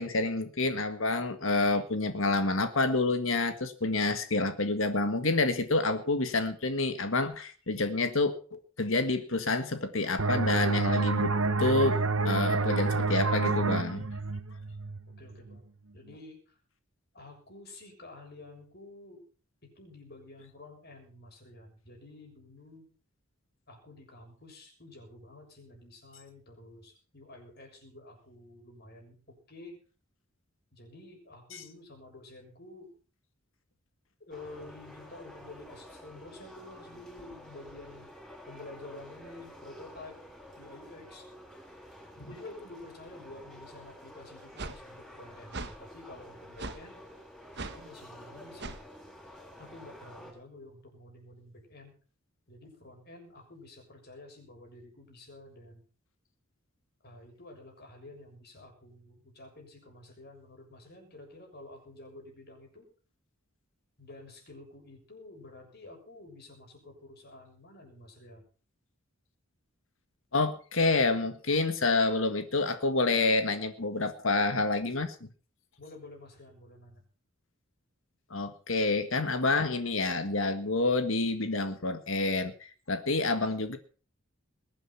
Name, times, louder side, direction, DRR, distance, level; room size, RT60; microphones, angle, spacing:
voice 1, 0.0-11.3 11.6-12.0 12.2-14.0 31.5-31.6 42.2-42.3 70.3-75.3 78.3-83.8, left 3 dB, 65° left, 9 dB, 1.7 m, -28 dB
sound 1, 10.2-15.6, right 3 dB, 70° right, 1.0 m, -29 dB
voice 2, 15.2-15.7 15.9-16.6 17.1-19.2 19.8-22.9 23.7-29.8 30.7-32.9 34.2-38.1 38.5-40.2 40.6-41.3 42.2-47.0 47.6-48.8 49.6-51.9 52.5-55.9 57.0-62.9 64.0-68.4 75.8-77.0, left 2 dB, 50° left, 2 dB, 6.9 m, -50 dB
sound 2, 34.3-50.3, equal, ahead, 6.7 m, -50 dB
sound 3, 44.6-44.8 45.5-45.8 46.6-46.8 47.5-47.8 48.6-48.8, right 3 dB, 55° right, 1.5 m, -38 dB
21.5 x 9.4 x 5.8 m, 0.40 s
head